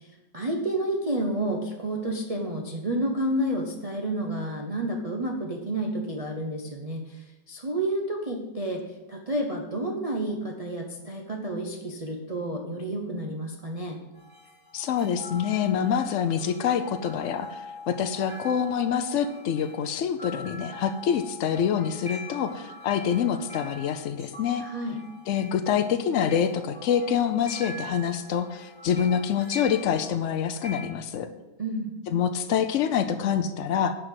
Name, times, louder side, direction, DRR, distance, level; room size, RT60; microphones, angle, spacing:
voice 1, 0.0-8.8 9.1-14.0 24.6-25.0 31.6-31.9, right 1 dB, 30° right, 0 dB, 0.7 m, -30 dB
sound 1, 14.1-30.9, left 2 dB, 10° left, 3.4 m, -43 dB
voice 2, 14.7-24.6 25.3-31.3 32.1-34.0, left 8 dB, 75° left, 9 dB, 0.6 m, -26 dB
10.5 x 5.1 x 7.7 m, 1.1 s
omnidirectional pair, 1.9 m